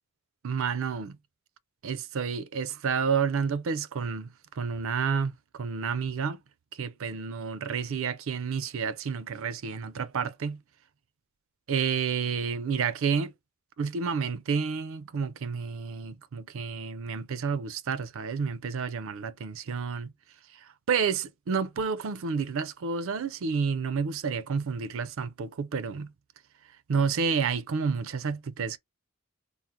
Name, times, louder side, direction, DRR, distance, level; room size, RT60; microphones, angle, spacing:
voice 1, 0.4-1.2 1.8-6.4 6.8-10.6 11.7-13.3 13.8-20.1 20.9-26.1 26.9-28.8, right 6 dB, 65° right, 0.4 m, -30 dB
3.6 x 2.0 x 4.2 m
head